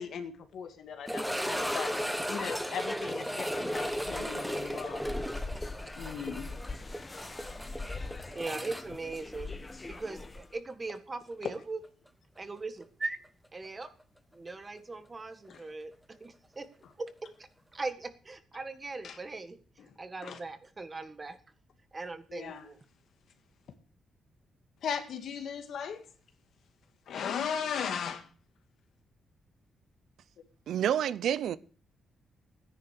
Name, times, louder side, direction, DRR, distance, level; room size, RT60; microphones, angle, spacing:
voice 1, 0.0-1.9 2.3-5.0 6.0-6.5 11.4-11.5 15.5-15.7 16.8-16.9 19.0-19.2 19.8-19.9 20.2-20.4 22.3-22.7 24.8-26.0 27.1-28.3, left 7 dB, 70° left, 2.1 m, -37 dB
sound 1, 1.1-10.0 10.2-10.3 11.0-11.1 13.6-13.7, equal, ahead, 1.2 m, -35 dB
sound 2, 3.4-10.6, left 3 dB, 20° left, 1.1 m, -42 dB
voice 2, 8.3-9.5 9.9-11.8 12.4-13.2 13.5-13.9 14.3-15.9 16.2-16.7 17.0-17.1 17.7-19.6 20.0-21.4 21.9-22.8, right 3 dB, 25° right, 1.6 m, -39 dB
voice 3, 30.7-31.6, right 10 dB, 75° right, 0.6 m, -28 dB
13.5 x 10.0 x 6.7 m
cardioid pair, 105°, 0 cm